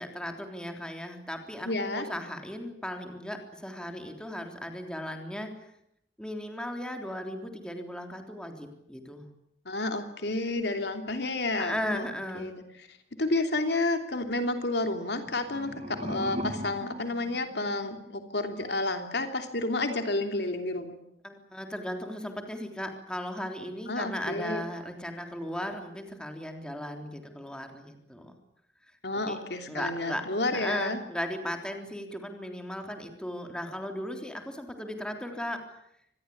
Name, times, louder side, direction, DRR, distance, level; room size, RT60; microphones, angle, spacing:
voice 1, 0.0-5.6 6.2-9.3 11.6-12.5 21.2-28.3 29.1-29.4 29.7-35.6, equal, 5° left, 4 dB, 3.6 m, -36 dB
voice 2, 1.6-2.1 9.6-12.0 12.3-12.6 13.2-21.0 23.9-24.7 29.0-31.0, left 2 dB, 70° left, 6 dB, 3.0 m, -30 dB
sound 1, 15.2-18.2, equal, 35° right, 1.8 m, -39 dB
26.0 x 20.5 x 8.7 m, 0.76 s
head